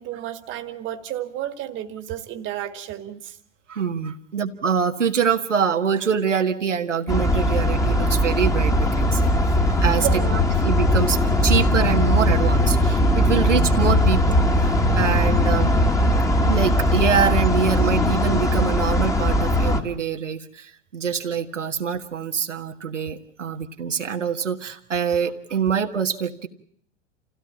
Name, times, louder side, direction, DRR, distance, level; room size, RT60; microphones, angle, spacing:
voice 1, 0.0-3.4 10.0-10.5 23.5-23.6, right 12 dB, 35° right, 9 dB, 1.9 m, -31 dB
voice 2, 3.7-10.1 10.3-15.7 16.1-26.5, right 7 dB, 80° right, 4 dB, 1.8 m, -25 dB
sound 1, 7.1-19.8, left 1 dB, 10° left, 1.8 m, -19 dB
28.0 x 16.5 x 8.5 m, 0.66 s
figure-of-eight pair, 100°, 36 cm